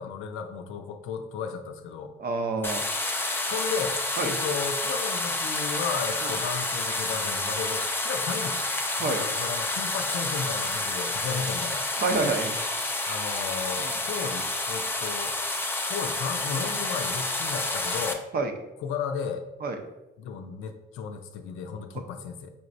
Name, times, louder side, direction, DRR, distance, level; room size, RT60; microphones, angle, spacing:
voice 1, 0.0-2.1 3.5-8.7 9.0-11.9 13.1-18.2 18.8-19.4 20.2-22.5, left 6 dB, 90° left, 6 dB, 0.5 m, -34 dB
voice 2, 2.2-2.8 4.2-4.3 6.2-6.3 9.0-9.2 12.0-12.6 13.8-13.9 18.3-18.5 19.6-19.8, right 3 dB, 50° right, 5 dB, 0.7 m, -28 dB
sound 1, 2.6-18.1, left 2 dB, 10° left, 0.4 m, -29 dB
5.6 x 3.1 x 2.6 m, 0.96 s
cardioid pair, 90°, 20 cm